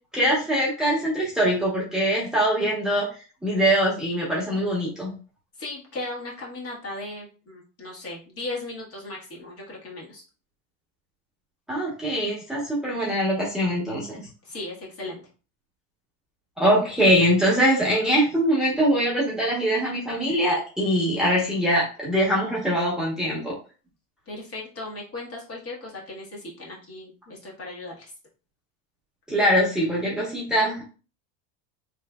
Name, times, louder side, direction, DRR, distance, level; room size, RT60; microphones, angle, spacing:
voice 1, 0.1-3.1 3.4-5.1 11.7-14.2 16.6-23.5 29.3-30.8, equal, ahead, -6 dB, 1.0 m, -23 dB
voice 2, 5.6-10.2 14.4-15.2 24.3-28.1, left 2 dB, 35° left, -3 dB, 1.5 m, -37 dB
3.2 x 3.2 x 2.3 m, 0.35 s
supercardioid pair, 130°, 38 cm